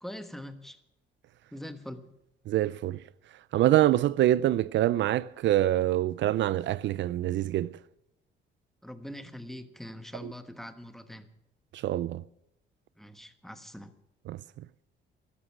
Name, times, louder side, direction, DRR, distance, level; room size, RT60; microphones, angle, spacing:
voice 1, 0.0-0.8 1.5-2.1 8.8-11.3 13.0-13.9, left 1 dB, ahead, 1.3 m, -43 dB
voice 2, 2.5-3.0 3.5-7.7 10.2-10.3 11.7-12.2 14.3-14.4, right 13 dB, 65° right, 0.4 m, -25 dB
14.0 x 11.5 x 6.1 m
cardioid pair, 90°, 20 cm